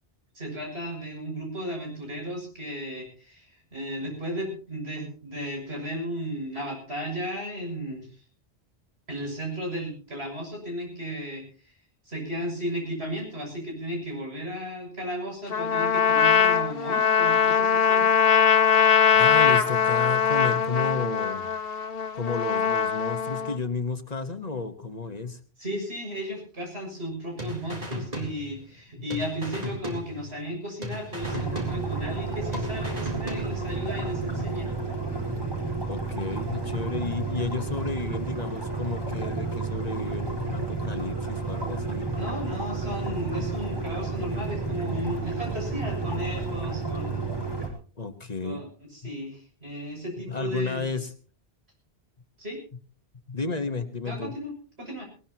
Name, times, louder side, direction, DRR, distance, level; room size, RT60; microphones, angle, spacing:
voice 1, 0.4-8.1 9.1-11.4 12.1-18.1 25.6-34.7 42.2-47.3 48.4-50.8 52.4-52.6 54.0-55.0, equal, 85° right, 1 dB, 7.2 m, -34 dB
Trumpet, 15.5-23.6, left 7 dB, 65° left, 1.2 m, -21 dB
voice 2, 19.1-21.5 22.1-25.4 35.9-42.1 48.0-48.6 50.3-51.1 53.3-54.3, left 4 dB, 40° left, 9 dB, 1.3 m, -32 dB
sound 1, 27.4-28.8 29.1-30.5 30.8-32.2 32.5-33.9, left 1 dB, 40° right, 4.1 m, -37 dB
sound 2, 31.2-47.7, right 3 dB, 20° right, 4.2 m, -31 dB
19.5 x 19.5 x 2.9 m, 0.38 s
omnidirectional pair, 1.1 m